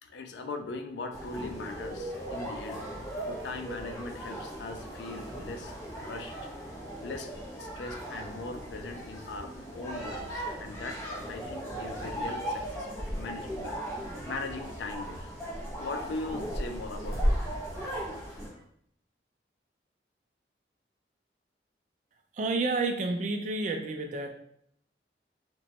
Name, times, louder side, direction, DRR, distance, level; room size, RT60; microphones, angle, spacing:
voice 1, 0.0-2.8 3.2-6.3 7.0-7.3 7.6-11.0 11.3-13.8 14.3-15.3 15.8-17.3, left 3 dB, 80° left, 6 dB, 0.4 m, -40 dB
sound 1, 1.1-18.5, equal, 15° left, 0.8 m, -36 dB
sound 2, 10.6-18.6, equal, 50° left, 1.5 m, -53 dB
voice 2, 22.3-24.3, right 3 dB, 45° right, 4 dB, 0.4 m, -30 dB
2.9 x 2.2 x 2.8 m, 0.68 s
head